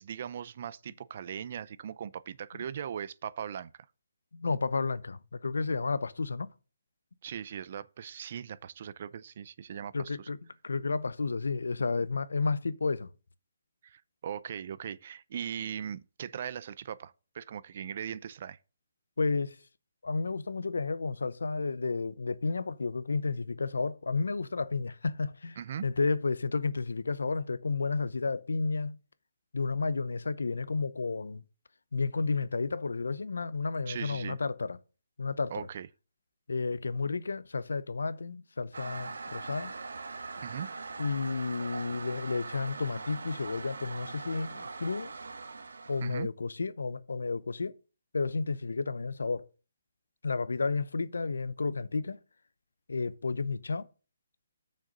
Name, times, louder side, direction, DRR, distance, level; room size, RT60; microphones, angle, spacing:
voice 1, 0.0-3.7 7.2-10.3 13.8-18.6 25.6-25.9 33.9-34.4 35.5-35.9 40.4-40.7 46.0-46.3, right 8 dB, 45° right, 0.4 m, -39 dB
voice 2, 4.3-6.5 9.9-10.4 10.6-13.1 19.2-19.6 20.0-25.6 25.8-29.0 29.5-31.4 31.9-34.8 35.2-35.7 36.5-39.7 41.0-45.1 45.9-47.7 48.1-49.4 50.2-52.2 52.9-53.9, left 4 dB, 90° left, 0.6 m, -32 dB
Toilet flush, 38.7-46.2, right 4 dB, 85° right, 1.0 m, -42 dB
6.6 x 6.4 x 5.2 m
hypercardioid pair, 160°, 0 cm